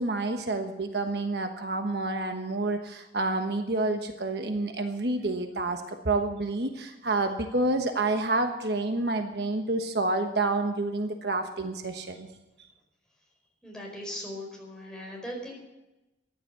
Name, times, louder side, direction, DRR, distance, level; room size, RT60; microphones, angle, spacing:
voice 1, 0.0-12.3, right 2 dB, 65° right, 5 dB, 1.3 m, -29 dB
voice 2, 13.6-15.5, equal, 5° left, -2 dB, 4.7 m, -39 dB
14.0 x 11.0 x 7.0 m, 0.99 s
head